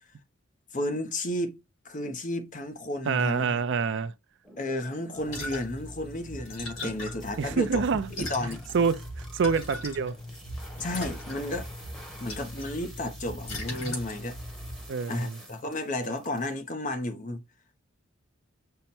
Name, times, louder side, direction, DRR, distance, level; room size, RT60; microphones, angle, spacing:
voice 1, 0.7-1.6 1.8-3.6 4.6-7.8 8.2-8.6 10.8-11.7 12.2-14.4 15.1-17.4, left 1 dB, 40° left, 0.8 m, -32 dB
voice 2, 3.1-4.1 7.4-8.1 8.7-10.1 14.9-15.4, right 5 dB, 60° right, 0.4 m, -26 dB
sound 1, 4.4-5.8 6.2-16.5, equal, 5° left, 1.1 m, -50 dB
sound 2, 5.2-14.9, left 1 dB, 70° left, 3.3 m, -39 dB
5.6 x 2.1 x 4.2 m
head